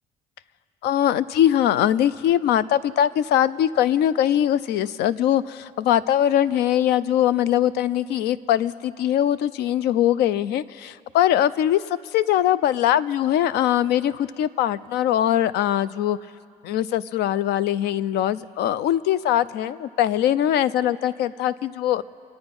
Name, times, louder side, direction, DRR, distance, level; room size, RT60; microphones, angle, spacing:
voice 1, 0.8-16.2 16.6-22.0, left 11 dB, 75° left, 17 dB, 0.5 m, -21 dB
26.0 x 8.9 x 5.3 m, 2.3 s
cardioid pair, 110°, 17 cm